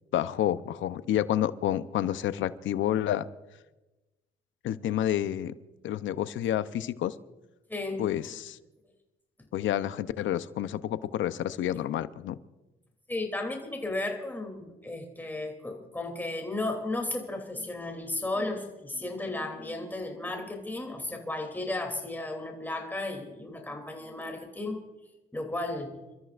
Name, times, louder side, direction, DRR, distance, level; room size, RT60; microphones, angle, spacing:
voice 1, 0.1-3.3 4.6-5.5 5.8-7.1 8.0-8.6 9.5-12.4, left 11 dB, 75° left, 13 dB, 0.7 m, -29 dB
voice 2, 7.7-8.1 13.1-24.8 25.3-26.0, left 2 dB, 10° left, 2 dB, 3.0 m, -34 dB
29.0 x 13.5 x 2.5 m, 1.1 s
cardioid pair, 90°, 20 cm